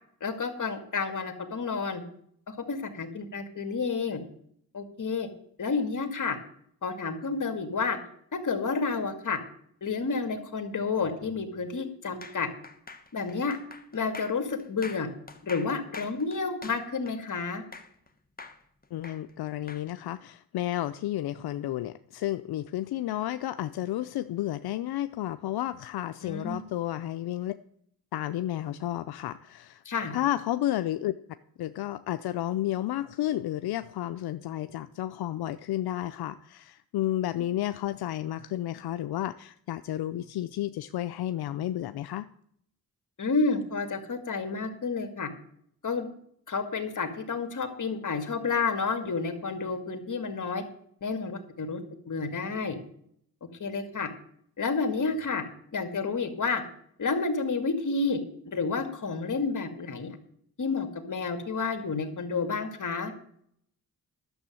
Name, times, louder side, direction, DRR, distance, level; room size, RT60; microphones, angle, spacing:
voice 1, 0.2-2.0 2.5-4.2 4.7-5.3 5.6-6.4 6.8-8.0 8.3-9.4 9.8-12.5 13.1-13.6 13.9-15.1 15.4-17.6 26.2-26.7 29.9-30.1 43.2-45.3 45.8-46.1 46.5-50.6 51.0-51.8 52.1-52.8 53.6-54.1 54.6-55.4 55.7-56.6 57.0-58.2 58.5-60.2 60.6-63.1, left 4 dB, 55° left, 7 dB, 2.1 m, -30 dB
sound 1, 12.2-18.1 18.4-19.9, left 3 dB, 25° left, 1.4 m, -45 dB
voice 2, 18.9-27.5 28.1-29.8 30.1-31.1 31.6-42.3, left 13 dB, 90° left, 11 dB, 0.5 m, -32 dB
11.5 x 6.9 x 7.7 m, 0.67 s
cardioid pair, 70°, 37 cm